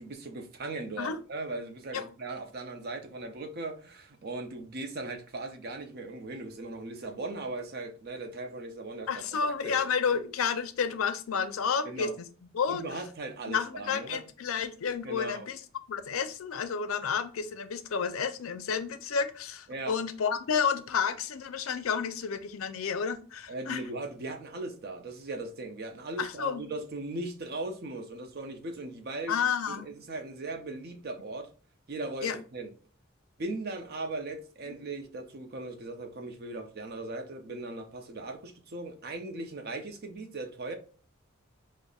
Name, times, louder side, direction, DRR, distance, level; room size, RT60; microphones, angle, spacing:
voice 1, 0.0-9.1 9.4-9.9 11.8-12.1 12.7-14.2 15.0-15.5 19.7-20.0 23.5-31.5 31.9-32.7 33.4-40.7, right 2 dB, 50° right, 0.6 m, -38 dB
voice 2, 9.1-12.3 12.5-12.8 13.5-15.6 15.9-23.8 26.2-26.6 29.3-29.9 32.2-32.4, left 6 dB, 85° left, 0.5 m, -31 dB
5.1 x 2.1 x 2.3 m
head